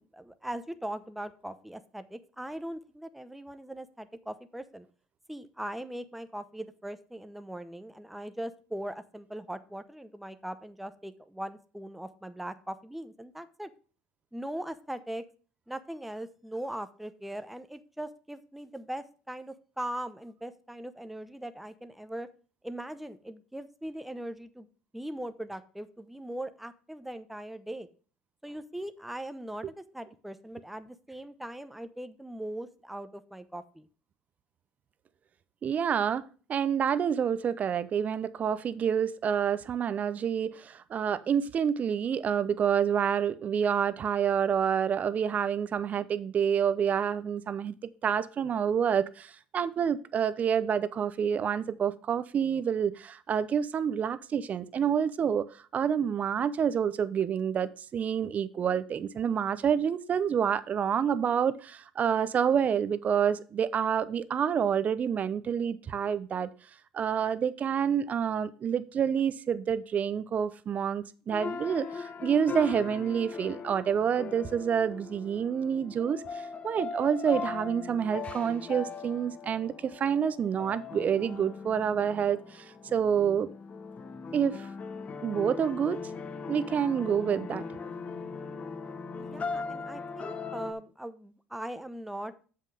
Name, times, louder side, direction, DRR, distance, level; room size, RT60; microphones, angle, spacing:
voice 1, 0.0-4.9 5.3-13.7 14.3-15.2 15.7-22.3 22.6-24.7 24.9-27.9 28.4-33.9 89.1-92.5, right 1 dB, 5° right, 0.8 m, -40 dB
voice 2, 35.6-36.2 36.5-47.7 48.0-55.5 55.7-66.5 66.9-83.5 84.3-84.7 85.2-86.0 86.5-87.6, right 8 dB, 40° right, 0.7 m, -28 dB
sound 1, 71.3-90.7, left 5 dB, 35° left, 1.0 m, -39 dB
7.4 x 5.7 x 4.8 m
hypercardioid pair, 80°, 4 cm